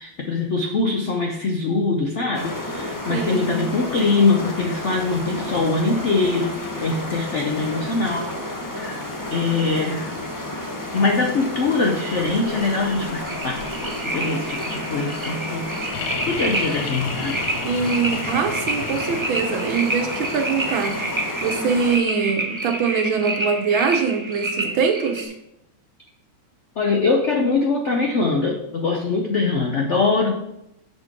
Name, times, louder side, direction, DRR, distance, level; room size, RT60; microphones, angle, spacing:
voice 1, 0.0-8.3 8.7-9.0 9.3-10.1 10.9-13.6 14.0-15.7 16.3-17.5 26.8-30.3, left 3 dB, 75° left, 1 dB, 0.6 m, -22 dB
sound 1, 2.3-22.0, left 1 dB, 25° left, 0.4 m, -31 dB
voice 2, 3.1-3.6 17.6-21.0 21.4-25.3, right 5 dB, 80° right, 5 dB, 1.7 m, -23 dB
sound 2, 13.3-25.2, right 2 dB, 50° right, 0.3 m, -29 dB
sound 3, 15.9-19.7 21.4-21.5, left 8 dB, 90° left, 1.6 m, -33 dB
6.5 x 4.4 x 5.8 m, 0.81 s
omnidirectional pair, 2.2 m